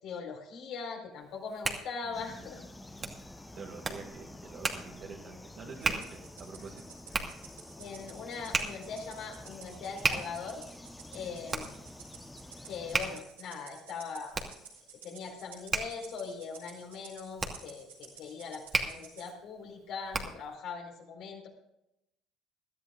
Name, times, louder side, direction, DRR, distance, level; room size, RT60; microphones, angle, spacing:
voice 1, 0.0-2.6 7.8-10.6 11.1-11.8 12.6-14.4 15.0-21.5, left 5 dB, 60° left, 1 dB, 4.6 m, -41 dB
Hands, 1.2-20.5, right 3 dB, 30° right, 2.4 m, -37 dB
sound 1, 2.1-13.2, left 1 dB, 15° left, 1.1 m, -49 dB
voice 2, 3.5-6.8 7.1-7.2, right 5 dB, 55° right, -3 dB, 2.5 m, -47 dB
Rattle (instrument), 5.8-19.3, right 6 dB, 85° right, 4.1 m, -53 dB
22.5 x 13.5 x 2.5 m, 0.85 s
hypercardioid pair, 60°, 0 cm